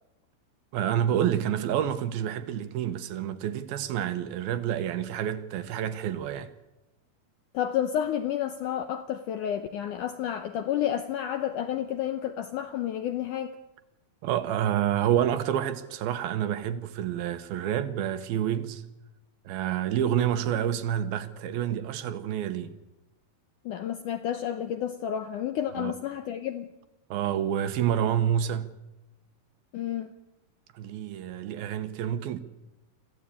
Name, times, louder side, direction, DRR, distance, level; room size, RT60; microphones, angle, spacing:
voice 1, 0.7-6.5 14.2-18.8 19.5-22.7 25.7-25.9 27.1-28.7 30.7-32.4, right 10 dB, 75° right, 2.7 m, -28 dB
voice 2, 7.5-13.6 23.7-26.7 29.7-30.1, left 10 dB, 75° left, 1.9 m, -30 dB
24.5 x 15.0 x 8.5 m
omnidirectional pair, 4.6 m